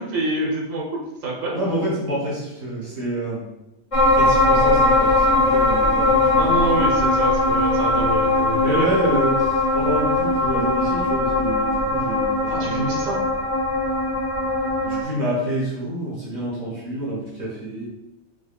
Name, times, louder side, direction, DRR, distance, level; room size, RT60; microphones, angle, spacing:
voice 1, 0.0-1.7 6.3-8.9 12.5-13.2, right 1 dB, 85° right, -1 dB, 1.3 m, -27 dB
voice 2, 1.5-3.5 4.1-6.7 8.6-13.0 14.8-17.9, right 1 dB, 70° right, -8 dB, 1.7 m, -27 dB
sound 1, 3.9-15.0, left 2 dB, 55° left, 0.3 m, -20 dB
4.6 x 2.8 x 2.3 m, 0.96 s
omnidirectional pair, 1.5 m